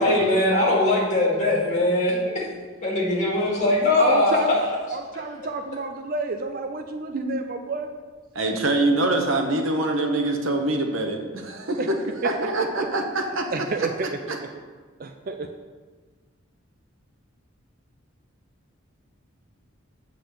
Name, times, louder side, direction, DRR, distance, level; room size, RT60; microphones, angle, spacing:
voice 1, 0.0-2.4 2.8-4.4, left 1 dB, 35° left, -5 dB, 2.2 m, -21 dB
voice 2, 4.0-7.9 11.8-11.9 12.2-12.3 12.8-12.9 13.5-14.4 15.0-15.5, right 3 dB, 45° right, 6 dB, 0.4 m, -29 dB
voice 3, 8.3-13.5 14.0-14.4, right 2 dB, 75° right, 3 dB, 1.0 m, -25 dB
8.3 x 4.1 x 6.9 m, 1.4 s
head